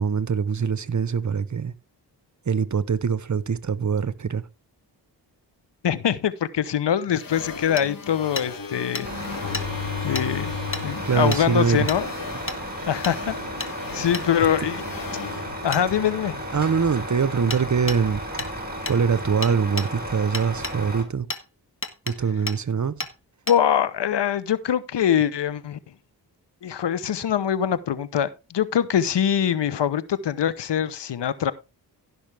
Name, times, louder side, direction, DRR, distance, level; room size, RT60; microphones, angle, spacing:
voice 1, 0.0-1.7 2.5-4.5 11.0-11.9 16.5-18.2 18.9-21.3 22.1-22.9, right 6 dB, 40° right, 1.0 m, -23 dB
voice 2, 5.8-9.1 9.5-9.6 10.0-10.5 10.8-12.1 12.9-14.8 15.6-16.4 23.5-25.8 26.6-31.5, left 9 dB, 70° left, 1.0 m, -23 dB
sound 1, 7.2-16.6, left 5 dB, 50° left, 1.8 m, -36 dB
Hammer, 7.8-7.9 8.4-8.5 8.9-9.1 9.5-9.7 10.1-10.3 10.7-10.8 11.3-11.4 11.9-12.0 12.5-12.6 13.0-13.2 13.6-13.7 14.1-14.3 15.7-15.8 17.5-17.6 17.9-18.0 18.4-18.5 18.9-19.0 19.4-19.9 20.3-20.8 21.3-21.4 21.8-22.2 22.5-22.6 23.0-23.1 23.5-23.6, left 3 dB, 30° left, 1.5 m, -31 dB
Truck, 9.0-21.0, equal, 20° right, 4.4 m, -34 dB
16.0 x 6.2 x 3.5 m
cardioid pair, 50°, 44 cm